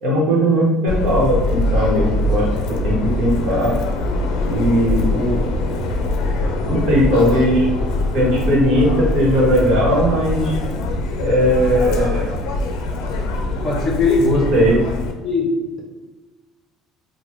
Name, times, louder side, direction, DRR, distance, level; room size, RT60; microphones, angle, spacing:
voice 1, 0.0-3.7 4.4-5.5 6.7-7.7 8.1-10.6 11.2-12.3 14.3-14.8, equal, 55° right, -4 dB, 1.1 m, -18 dB
Subway metro underground, 0.9-15.1, left 1 dB, 85° left, 0.4 m, -22 dB
voice 2, 13.6-14.5 15.2-15.8, left 3 dB, 30° left, -1 dB, 0.6 m, -19 dB
3.2 x 2.2 x 3.1 m, 1.2 s
cardioid pair, 170°, 0 cm